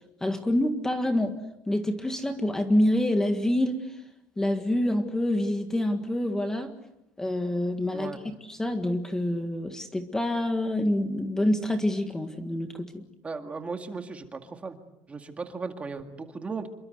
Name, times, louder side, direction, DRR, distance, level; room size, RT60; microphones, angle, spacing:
voice 1, 0.2-1.4 1.7-4.0 4.4-6.7 7.2-8.1 8.5-13.0, left 1 dB, 5° left, 6 dB, 1.7 m, -26 dB
voice 2, 13.2-14.8 15.1-16.7, right 4 dB, 20° right, 6 dB, 2.0 m, -36 dB
27.5 x 24.0 x 8.1 m, 0.87 s
cardioid pair, 170°, 7 cm